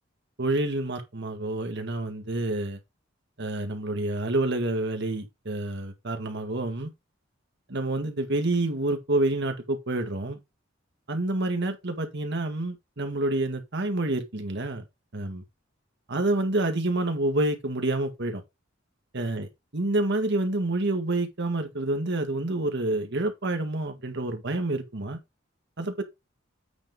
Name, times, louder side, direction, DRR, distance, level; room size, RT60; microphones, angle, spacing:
voice 1, 0.4-2.8 3.4-6.9 7.7-10.4 11.1-14.8 15.1-15.4 16.1-18.4 19.1-19.5 19.7-25.2 25.8-26.0, right 2 dB, 60° right, 1.8 m, -28 dB
8.8 x 3.8 x 5.2 m
head